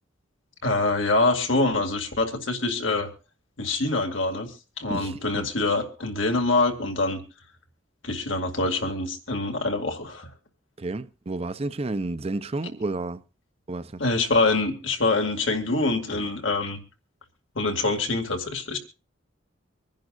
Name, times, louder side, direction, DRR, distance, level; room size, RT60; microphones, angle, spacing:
voice 1, 0.6-3.1 3.6-4.5 4.8-7.2 8.0-10.3 14.0-16.8 17.6-18.8, left 2 dB, 80° left, 2.3 m, -25 dB
voice 2, 4.9-5.5 10.8-13.2 13.7-14.0, right 2 dB, 30° right, 0.6 m, -31 dB
25.5 x 10.5 x 2.5 m
head